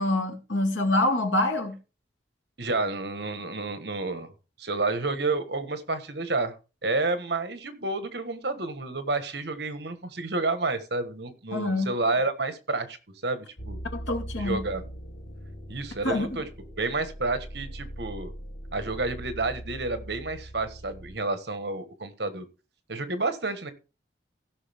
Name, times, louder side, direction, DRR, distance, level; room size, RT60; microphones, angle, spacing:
voice 1, 0.0-1.8 11.5-11.9 13.9-14.6 16.0-16.3, left 2 dB, 90° left, 2.4 m, -26 dB
voice 2, 2.6-4.3 4.6-6.6 6.8-13.0 13.2-13.8 14.4-14.8 15.7-16.4 16.8-18.3 18.7-22.4 22.9-23.7, right 3 dB, 60° right, 1.4 m, -30 dB
sound 1, 13.6-21.2, right 1 dB, 50° left, 1.3 m, -41 dB
16.0 x 6.1 x 3.6 m
head